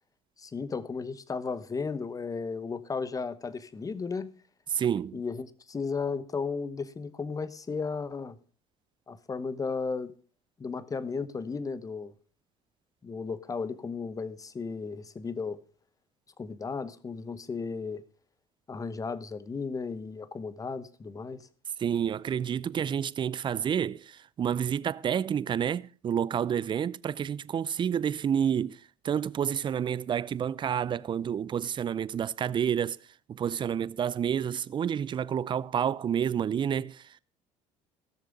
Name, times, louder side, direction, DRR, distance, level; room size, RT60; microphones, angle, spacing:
voice 1, 0.4-4.3 5.1-8.4 9.1-10.1 10.6-12.1 13.0-15.6 16.4-18.0 18.7-21.5, left 4 dB, 25° left, 1.0 m, -34 dB
voice 2, 4.7-5.2 21.8-33.0 33.3-37.2, right 8 dB, 35° right, 0.5 m, -29 dB
16.0 x 6.7 x 5.2 m
supercardioid pair, 80°, 14 cm